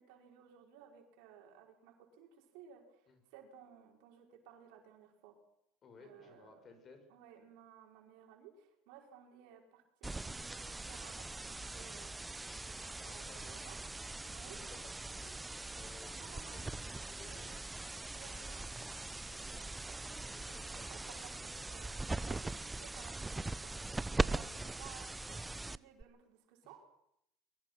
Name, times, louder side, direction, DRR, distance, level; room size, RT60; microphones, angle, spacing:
voice 1, 0.0-5.4 6.0-6.6 7.1-14.6 16.1-16.7 17.0-17.6 18.1-26.8, right 8 dB, 75° right, 2 dB, 5.3 m, -58 dB
voice 2, 5.8-7.0 13.0-13.4 14.2-17.5 19.3-19.7 20.3-21.0 24.4-24.6, left 4 dB, 40° left, 6 dB, 7.1 m, -59 dB
sound 1, 10.0-26.0, right 2 dB, 15° right, 0.7 m, -41 dB
23.0 x 22.0 x 6.0 m, 0.78 s
hypercardioid pair, 85°, 0 cm